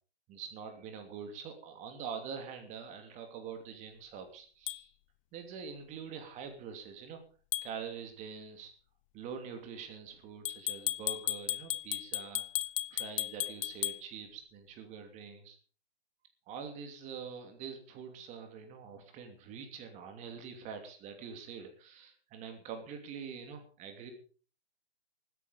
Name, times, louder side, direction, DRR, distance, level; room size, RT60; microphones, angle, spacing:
voice 1, 0.3-4.9 5.3-7.2 7.6-8.7 9.1-12.4 12.9-15.6 16.5-24.1, right 6 dB, 20° right, 6 dB, 2.9 m, -45 dB
sound 1, 4.7-4.8 7.5-7.7 10.5-14.0, left 14 dB, 30° left, 0.7 m, -35 dB
15.5 x 13.0 x 5.4 m, 0.40 s
hypercardioid pair, 135°, 32 cm